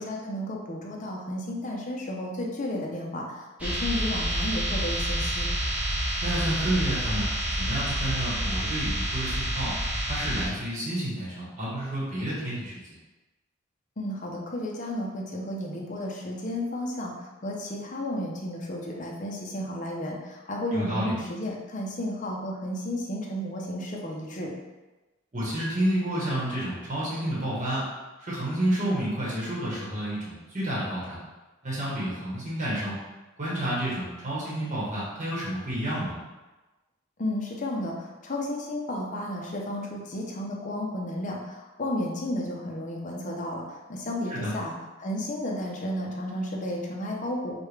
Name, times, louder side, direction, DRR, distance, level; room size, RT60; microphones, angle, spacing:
voice 1, 0.0-5.5 14.0-17.1 17.4-24.5 37.2-44.7 45.0-47.6, left 1 dB, 40° left, -1 dB, 0.7 m, -32 dB
sound 1, 3.6-10.5, right 1 dB, 5° right, 0.9 m, -28 dB
voice 2, 6.2-7.3 7.6-9.7 10.1-12.7 20.7-21.1 25.3-27.8 28.2-31.2 31.6-32.9 33.4-36.2 44.3-44.5, right 1 dB, 40° right, -7 dB, 1.1 m, -30 dB
4.9 x 2.4 x 3.2 m, 1.1 s
head